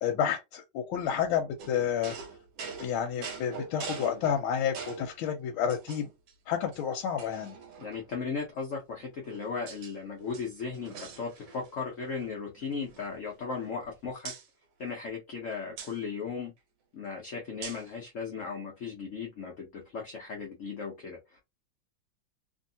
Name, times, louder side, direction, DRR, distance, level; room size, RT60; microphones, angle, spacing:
voice 1, 0.0-2.2 2.8-6.1 6.5-7.6, left 8 dB, 90° left, 1.4 m, -30 dB
sound 1, 1.6-5.2 5.7-6.3 6.7-6.8 7.2-8.2 9.0-9.9 10.2-11.8 12.0-12.3 12.6-13.9 14.2-14.5 15.8-15.9 17.6-17.9, right 5 dB, 65° right, 1.2 m, -43 dB
voice 2, 7.8-14.3 14.8-16.5 16.9-21.4, left 5 dB, 65° left, 0.8 m, -37 dB
3.0 x 2.7 x 2.7 m
omnidirectional pair, 2.3 m